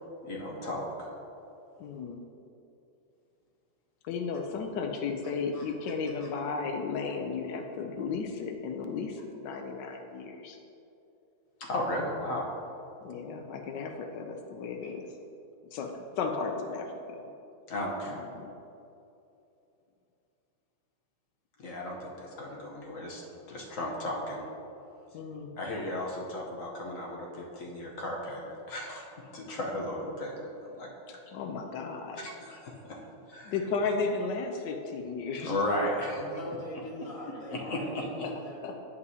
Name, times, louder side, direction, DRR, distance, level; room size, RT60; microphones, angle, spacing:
voice 1, 0.2-1.1 5.5-5.6 11.6-12.5 14.8-14.9 17.7-18.2 21.6-23.2 23.5-24.4 25.6-31.2 32.2-33.0 33.3-33.5 35.4-36.2 37.5-38.1, left 1 dB, 55° left, -2 dB, 1.2 m, -35 dB
voice 2, 1.8-2.2 4.0-10.6 13.0-15.1 15.7-17.2 18.1-18.5 25.1-25.5 31.3-32.3 33.4-35.5 38.2-38.3 38.6-38.8, left 4 dB, 85° left, 4 dB, 1.2 m, -34 dB
voice 3, 36.1-38.7, left 1 dB, 20° left, -4 dB, 1.2 m, -42 dB
10.5 x 5.4 x 2.7 m, 2.8 s
omnidirectional pair, 1.8 m